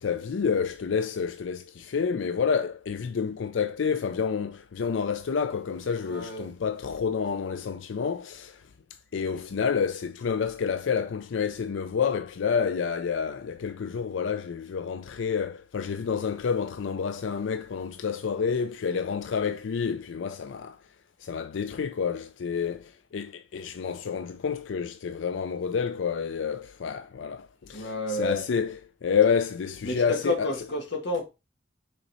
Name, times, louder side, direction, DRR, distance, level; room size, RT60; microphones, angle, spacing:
voice 1, 0.0-8.7 9.1-20.8 21.2-30.5, left 6 dB, 90° left, 0.4 m, -29 dB
voice 2, 6.0-6.5 27.7-28.4 29.8-31.3, left 1 dB, 65° left, 1.6 m, -30 dB
6.4 x 4.1 x 4.1 m
head